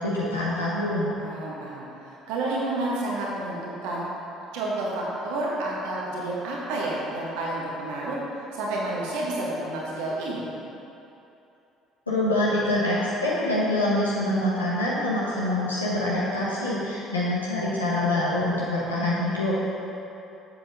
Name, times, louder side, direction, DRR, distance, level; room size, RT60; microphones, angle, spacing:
voice 1, 0.0-1.1 12.1-19.6, left 1 dB, 85° left, -8 dB, 1.0 m, -25 dB
voice 2, 1.2-4.1 4.5-8.2 8.5-10.4, right 2 dB, 65° right, -4 dB, 1.5 m, -30 dB
7.7 x 7.4 x 3.6 m, 2.8 s
figure-of-eight pair, 55°, 0 cm